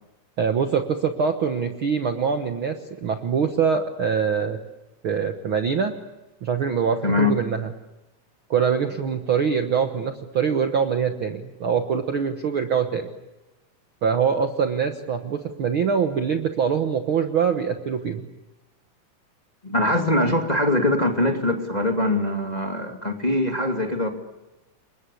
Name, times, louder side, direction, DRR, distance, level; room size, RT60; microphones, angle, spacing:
voice 1, 0.4-4.6 5.0-6.0 6.4-7.7 8.5-13.1 14.0-18.2, right 6 dB, 55° right, 6 dB, 1.6 m, -24 dB
voice 2, 19.6-24.1, left 1 dB, 15° left, 3 dB, 2.1 m, -22 dB
29.5 x 24.0 x 8.4 m, 1.0 s
omnidirectional pair, 3.7 m